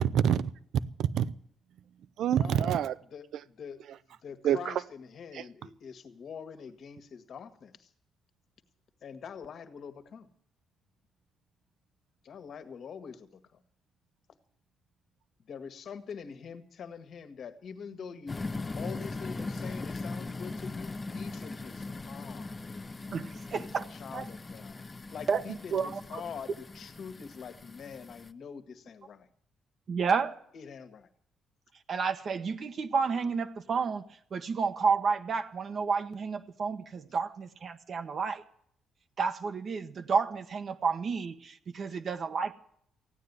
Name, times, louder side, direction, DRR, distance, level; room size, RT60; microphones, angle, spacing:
voice 1, 0.0-1.3 2.2-2.9 4.4-4.7 5.3-5.4, right 9 dB, 75° right, 0.6 m, -27 dB
voice 2, 2.3-2.7 3.1-3.8 4.2-7.9 9.0-10.3 12.2-13.6 15.5-18.5 18.7-22.5 23.5-29.3 30.5-31.1 41.9-42.0, left 6 dB, 60° left, 1.6 m, -45 dB
sound 1, 18.3-28.3, left 3 dB, 25° left, 0.8 m, -40 dB
voice 3, 23.1-23.8 24.1-24.3 25.3-25.4 25.7-26.0 29.9-30.4 31.9-34.0 34.3-38.4 39.2-42.5, right 5 dB, 50° right, 1.1 m, -30 dB
16.0 x 9.6 x 9.5 m
cardioid pair, 90°, 0 cm